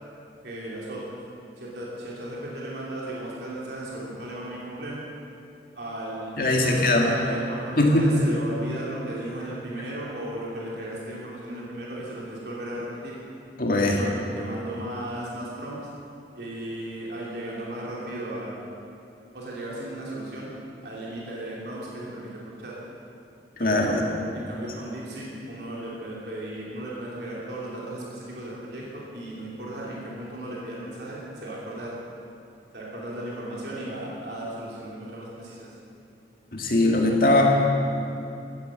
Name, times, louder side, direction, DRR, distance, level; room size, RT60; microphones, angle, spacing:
voice 1, 0.4-1.2 1.6-5.1 5.7-13.2 13.9-15.8 16.3-18.6 19.3-20.5 20.8-22.8 23.6-24.0 24.3-31.9 32.7-35.8, right 1 dB, 70° right, -5 dB, 2.9 m, -36 dB
voice 2, 6.4-7.1 7.8-8.1 13.6-14.0 23.6-24.0 36.5-37.4, left 1 dB, 55° left, 0 dB, 2.1 m, -20 dB
15.0 x 9.8 x 7.7 m, 2.6 s
head